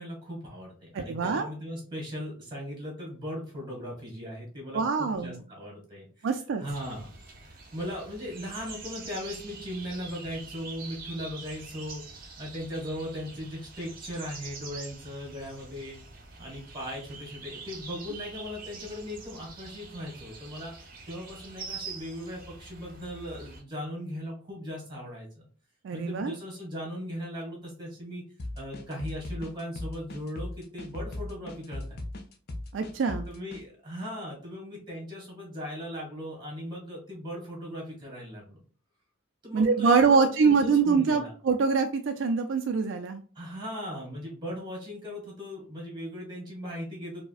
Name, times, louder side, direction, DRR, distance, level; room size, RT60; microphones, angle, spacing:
voice 1, 0.0-7.1 7.4-16.0 16.4-20.7 21.1-25.5 25.9-28.2 28.5-32.0 33.3-38.6 39.4-41.3 43.3-47.2, equal, 25° right, -2 dB, 1.6 m, -38 dB
voice 2, 0.9-1.5 4.7-5.4 6.2-6.6 25.8-26.3 32.7-33.3 39.5-43.2, right 5 dB, 70° right, 6 dB, 0.3 m, -24 dB
sound 1, 6.7-23.6, right 4 dB, 45° right, 0.8 m, -45 dB
sound 2, 28.4-33.6, left 1 dB, 50° left, 0.5 m, -38 dB
4.6 x 2.1 x 2.4 m, 0.41 s
head